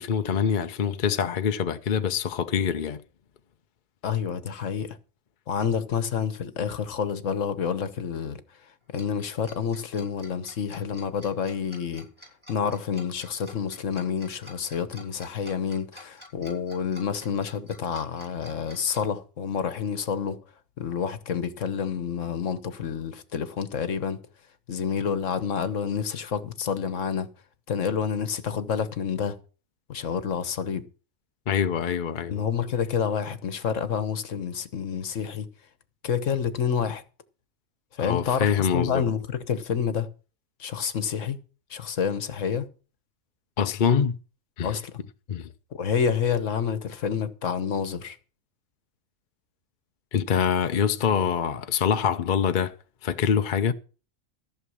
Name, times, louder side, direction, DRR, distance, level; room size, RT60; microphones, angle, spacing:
voice 1, 0.0-3.0 31.5-32.4 38.0-39.0 43.6-44.2 44.6-44.8 45.3-45.5 50.1-52.7 53.0-53.7, left 7 dB, 45° left, 0.7 m, -25 dB
voice 2, 4.0-5.0 5.5-8.4 8.9-12.1 12.5-20.4 20.8-24.2 24.7-27.3 27.7-29.4 29.9-30.9 32.3-35.5 36.0-37.0 37.9-40.1 40.6-41.4 41.7-42.7 44.6-44.9 45.7-48.2, left 7 dB, 65° left, 1.4 m, -28 dB
Tick-tock, 8.9-19.0, left 1 dB, 20° right, 5.6 m, -48 dB
14.5 x 6.9 x 6.4 m
omnidirectional pair, 1.4 m